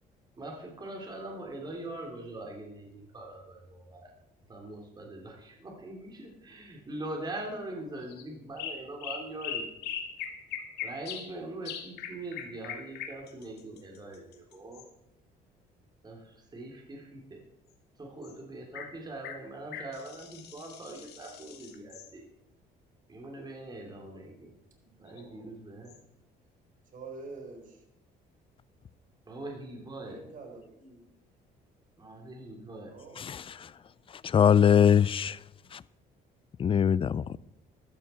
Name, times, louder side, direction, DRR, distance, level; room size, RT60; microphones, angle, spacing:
voice 1, 0.4-4.1 4.5-9.7 10.8-14.8 16.0-17.4 18.0-22.2 23.1-24.5 25.0-25.9 29.3-30.2 32.0-32.9, right 2 dB, 25° right, 3.3 m, -42 dB
sound 1, 8.0-8.2 8.6-11.3 11.6-14.9 18.2-18.3 18.7-18.9 19.2-22.1 25.1-25.2 25.9-26.0, left 8 dB, 75° left, 2.1 m, -40 dB
voice 2, 24.9-25.5 26.9-27.7 30.0-31.0 32.9-33.2, right 3 dB, 50° right, 4.3 m, -46 dB
voice 3, 33.2-33.7 34.2-35.4 35.7-35.8 36.6-37.4, left 8 dB, 30° left, 0.4 m, -23 dB
14.0 x 13.5 x 4.5 m
cardioid pair, 110°, 17 cm